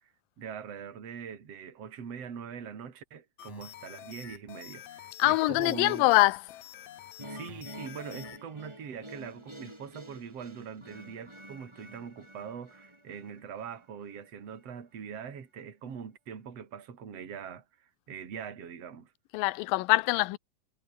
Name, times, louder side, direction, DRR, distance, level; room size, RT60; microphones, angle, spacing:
voice 1, 0.4-6.1 7.3-19.1, right 7 dB, 45° right, 3.8 m, -42 dB
sound 1, 3.4-8.4, left 12 dB, 60° left, 2.4 m, -48 dB
voice 2, 5.2-6.4 19.3-20.4, left 20 dB, 80° left, 2.4 m, -24 dB
sound 2, 7.2-14.3, right 1 dB, 5° right, 5.7 m, -49 dB
omnidirectional pair, 4.1 m